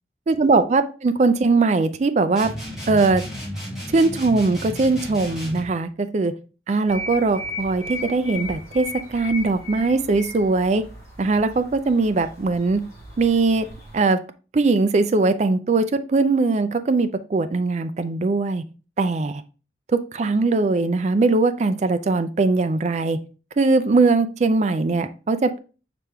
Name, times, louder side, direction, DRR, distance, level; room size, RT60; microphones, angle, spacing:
voice 1, 0.3-2.5 2.9-3.2 3.9-6.3 6.7-10.8 11.2-12.8 13.2-13.7 13.9-14.2 14.5-18.6 19.0-19.4 19.9-23.2 23.6-25.6, right 3 dB, 40° right, 10 dB, 0.4 m, -20 dB
sound 1, 2.4-5.7, equal, 5° right, 1.7 m, -33 dB
sound 2, 6.9-14.0, left 2 dB, 15° left, 1.9 m, -37 dB
5.1 x 3.4 x 3.1 m, 0.34 s
head